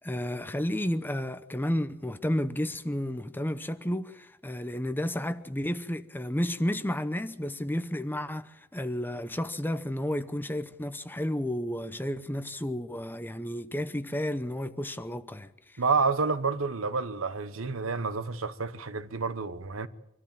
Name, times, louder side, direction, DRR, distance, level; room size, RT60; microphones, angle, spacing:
voice 1, 0.0-15.8, left 1 dB, 10° left, 0.8 m, -32 dB
voice 2, 15.8-19.9, right 4 dB, 75° right, 1.1 m, -29 dB
24.5 x 13.5 x 8.8 m
head